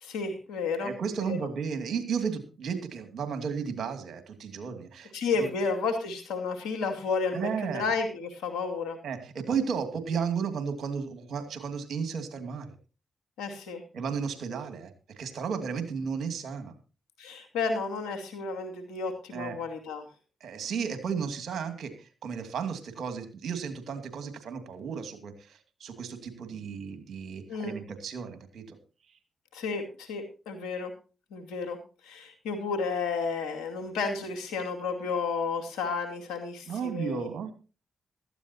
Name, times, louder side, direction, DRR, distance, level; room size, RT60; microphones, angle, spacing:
voice 1, 0.0-0.9 1.2-1.4 5.1-9.0 13.4-13.8 17.2-20.0 27.5-27.7 29.5-30.9 31.3-31.8 32.0-37.3, left 4 dB, 90° left, 5 dB, 2.5 m, -32 dB
voice 2, 0.8-5.1 5.4-5.5 7.3-7.9 9.0-12.7 13.9-16.7 19.3-19.6 20.4-28.8 36.7-37.5, right 6 dB, 70° right, 7 dB, 2.4 m, -34 dB
16.5 x 13.5 x 2.9 m, 0.33 s
supercardioid pair, 45°, 0 cm